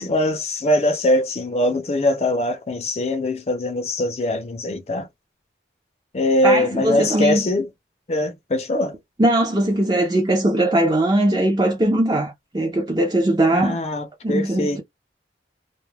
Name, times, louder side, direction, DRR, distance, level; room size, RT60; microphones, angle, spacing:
voice 1, 0.0-5.1 6.1-7.7 8.1-9.0 13.5-14.8, left 1 dB, 35° left, 0.4 m, -22 dB
voice 2, 6.4-7.4 9.2-13.8 14.2-14.8, right 1 dB, 25° right, 0.5 m, -20 dB
2.3 x 2.1 x 3.1 m
head